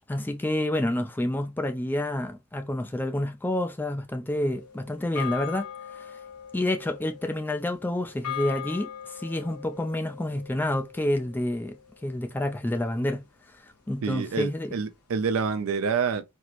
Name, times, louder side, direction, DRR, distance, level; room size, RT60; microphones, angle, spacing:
voice 1, 0.1-5.6 5.9-6.2 6.5-11.8 12.0-13.2 13.5-14.7, left 1 dB, 10° left, 0.3 m, -29 dB
sound 1, 4.3-12.8, left 10 dB, 85° left, 1.0 m, -41 dB
voice 2, 14.0-16.2, right 5 dB, 65° right, 0.4 m, -27 dB
4.3 x 2.0 x 2.4 m
head